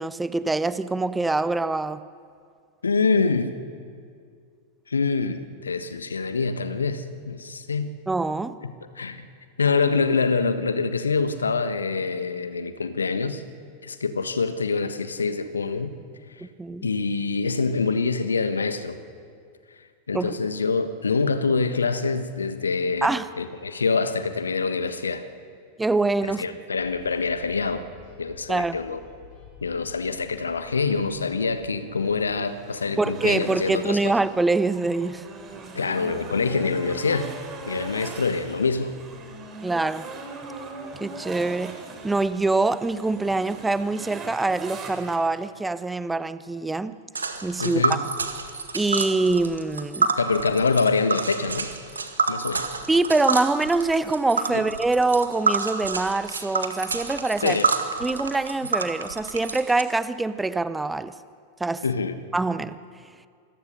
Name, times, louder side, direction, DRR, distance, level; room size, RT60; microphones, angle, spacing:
voice 1, 0.0-2.0 8.1-8.6 16.6-16.9 20.1-20.4 23.0-23.3 25.8-26.4 28.5-28.8 33.0-35.2 39.6-40.1 41.0-41.8 42.0-47.0 47.4-48.0 48.7-50.1 52.9-57.6 58.0-61.1 61.6-61.8 62.3-62.8, right 3 dB, 10° right, 0.7 m, -24 dB
voice 2, 2.8-3.6 4.9-7.9 8.6-9.3 9.6-13.4 13.8-15.9 16.8-19.0 20.1-25.2 26.2-27.8 28.2-29.0 29.6-34.1 35.7-37.3 37.7-38.9 47.6-48.0 50.1-51.7 52.3-52.7 54.5-54.6 57.4-57.7 61.8-62.2, left 4 dB, 75° left, 1.4 m, -25 dB
sound 1, 26.8-32.3, left 5 dB, 45° left, 5.9 m, -50 dB
sound 2, 32.0-45.2, right 3 dB, 25° right, 3.8 m, -40 dB
Tick, 47.1-59.8, right 4 dB, 75° right, 1.8 m, -28 dB
27.5 x 21.0 x 6.6 m
figure-of-eight pair, 90°, 0 cm